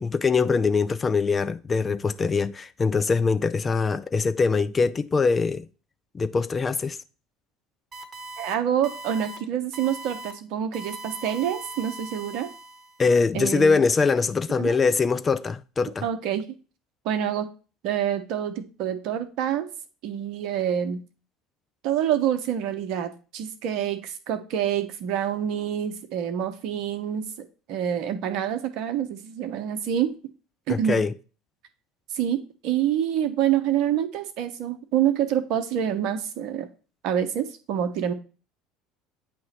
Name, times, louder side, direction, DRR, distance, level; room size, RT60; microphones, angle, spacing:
voice 1, 0.0-5.7 6.1-7.0 13.0-16.1 30.7-31.1, left 4 dB, 25° left, 0.4 m, -23 dB
sound 1, 7.9-8.5 8.8-9.4 9.7-10.3 10.7-13.1, right 2 dB, 35° right, 1.0 m, -40 dB
voice 2, 8.4-12.5 13.3-13.8 14.6-14.7 16.0-16.4 17.0-17.5 17.8-19.7 20.0-21.0 21.8-27.3 27.7-30.1 30.7-31.0 32.1-32.4 32.6-36.7 37.0-38.1, right 10 dB, 60° right, 0.8 m, -26 dB
8.6 x 2.9 x 4.2 m
figure-of-eight pair, 65°, 0 cm